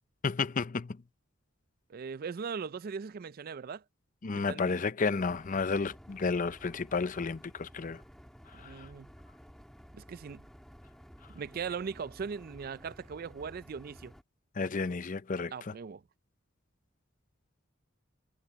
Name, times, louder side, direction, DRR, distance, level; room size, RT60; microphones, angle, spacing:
voice 1, 0.2-1.0 4.2-8.0 8.8-8.9 14.6-15.7, left 4 dB, 40° left, 0.5 m, -32 dB
voice 2, 1.9-3.8 4.3-4.8 8.5-9.1 9.9-10.5 11.3-14.1 15.5-16.0, right 6 dB, 45° right, 0.4 m, -39 dB
sound 1, 5.2-14.2, equal, ahead, 1.6 m, -54 dB
head